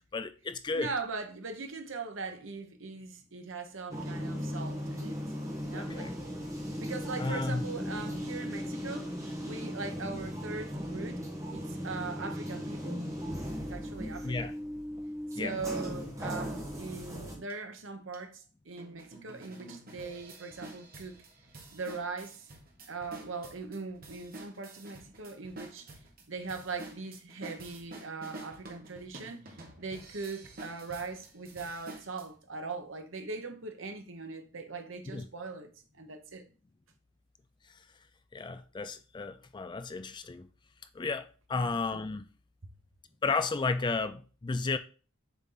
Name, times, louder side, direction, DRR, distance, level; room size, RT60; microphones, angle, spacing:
voice 1, 0.1-0.9 5.7-6.1 7.2-7.6 14.2-14.5 15.4-15.5 35.1-35.2 38.3-40.5 41.0-42.2 43.2-44.8, left 4 dB, 20° left, 0.3 m, -33 dB
voice 2, 0.7-5.3 5.7-6.1 6.8-9.2 9.4-11.3 11.5-13.1 13.6-14.6 15.3-21.2 21.7-22.5 22.9-25.9 26.3-29.4 29.8-35.7 36.0-36.4 41.5-41.8, right 4 dB, 60° right, 1.1 m, -40 dB
sound 1, 3.9-17.3, equal, 15° right, 1.5 m, -37 dB
sound 2, 17.5-17.6 18.1-18.2 18.8-32.3, right 2 dB, 45° right, 1.4 m, -49 dB
7.1 x 4.3 x 3.9 m
head